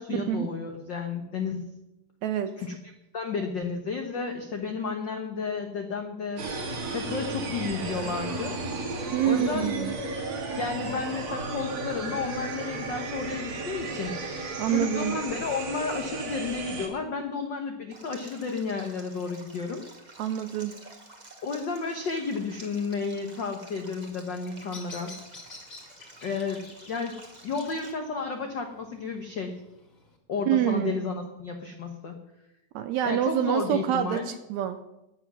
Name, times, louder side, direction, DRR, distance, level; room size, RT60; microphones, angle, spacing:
voice 1, 0.0-1.8 2.6-2.8 3.1-6.4 6.9-8.6 9.2-9.8 10.6-14.2 14.7-19.8 21.4-25.2 26.2-27.2 27.4-29.6 30.3-32.1 33.0-34.3, left 4 dB, 85° left, 4 dB, 1.0 m, -32 dB
voice 2, 2.2-2.5 9.1-9.9 14.6-15.2 20.2-20.8 30.5-31.1 32.8-34.8, right 11 dB, 80° right, 10 dB, 1.7 m, -26 dB
sound 1, 6.4-16.9, right 3 dB, 55° right, 3.2 m, -34 dB
Stream, 17.9-27.9, right 2 dB, 25° right, 0.9 m, -50 dB
Bird vocalization bird call bird song, 24.2-30.2, left 3 dB, 30° left, 1.9 m, -50 dB
15.0 x 9.8 x 6.1 m, 0.94 s
omnidirectional pair, 3.8 m